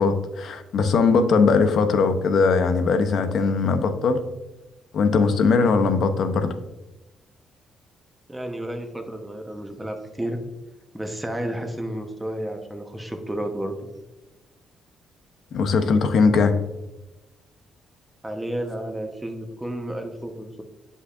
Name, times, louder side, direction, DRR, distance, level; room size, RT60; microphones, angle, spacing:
voice 1, 0.0-4.2 4.9-6.6 15.5-16.6, left 4 dB, 65° left, 8 dB, 0.7 m, -20 dB
voice 2, 8.3-10.4 10.9-13.8 18.2-20.6, right 1 dB, 10° right, 4 dB, 1.0 m, -31 dB
8.0 x 5.5 x 2.5 m, 1.0 s
cardioid pair, 90°, 0 cm